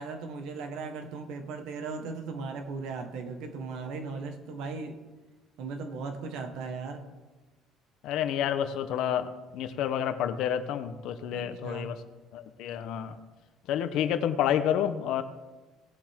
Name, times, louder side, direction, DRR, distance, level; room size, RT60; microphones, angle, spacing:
voice 1, 0.0-5.0 5.6-7.1 11.3-12.0, right 4 dB, 65° right, 6 dB, 1.4 m, -37 dB
voice 2, 8.0-12.0 12.3-13.2 13.7-15.2, left 9 dB, 60° left, 10 dB, 0.8 m, -29 dB
18.5 x 7.4 x 3.7 m, 1.2 s
cardioid pair, 155°, 0 cm